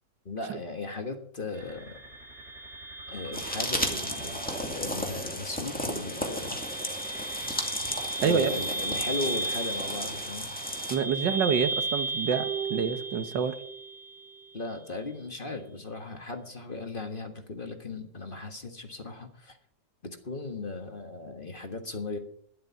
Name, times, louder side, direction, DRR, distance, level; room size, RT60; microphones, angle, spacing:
voice 1, 0.2-2.0 3.1-6.6 8.2-10.5 14.5-19.6 20.0-22.2, left 3 dB, 30° left, 4 dB, 1.6 m, -37 dB
sound 1, 1.5-14.5, right 2 dB, 40° right, 7.4 m, -36 dB
sound 2, 3.3-11.0, equal, 5° left, 2.2 m, -34 dB
voice 2, 10.9-13.5, right 6 dB, 85° right, 10 dB, 1.8 m, -27 dB
sound 3, 12.3-14.0 14.2-14.3, right 9 dB, 70° right, 1.2 m, -37 dB
12.0 x 11.5 x 5.9 m, 0.63 s
omnidirectional pair, 1.9 m